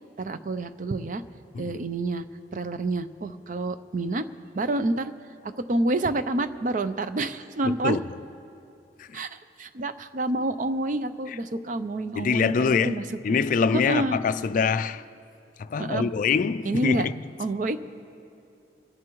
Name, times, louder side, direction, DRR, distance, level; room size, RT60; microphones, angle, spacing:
voice 1, 0.2-1.2 1.6-2.2 2.5-4.2 4.6-5.1 5.4-8.0 9.1-13.4 13.7-14.2 15.8-16.1 16.7-17.1 17.4-17.8, right 2 dB, 45° right, 0.5 m, -28 dB
voice 2, 7.6-8.0 9.0-9.2 11.3-11.4 12.2-15.0 15.6-17.1, left 5 dB, 45° left, 0.3 m, -25 dB
28.5 x 11.0 x 3.1 m
head